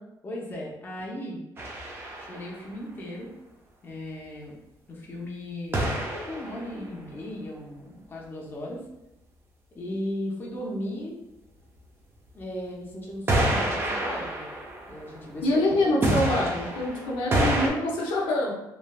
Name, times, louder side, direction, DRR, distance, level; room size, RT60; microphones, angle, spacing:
voice 1, 0.2-1.4 2.2-3.3 3.8-4.6 4.9-8.8 9.8-11.1 12.3-14.5 14.9-15.5 15.7-16.1, left 1 dB, 25° left, -3 dB, 0.7 m, -36 dB
sound 1, 1.6-2.6 5.7-6.8 13.3-15.6 16.0-17.7, right 1 dB, 30° right, 0.6 m, -28 dB
voice 2, 15.4-18.5, left 1 dB, 85° left, -4 dB, 0.8 m, -25 dB
3.1 x 2.5 x 2.3 m, 0.91 s
cardioid pair, 105°, 8 cm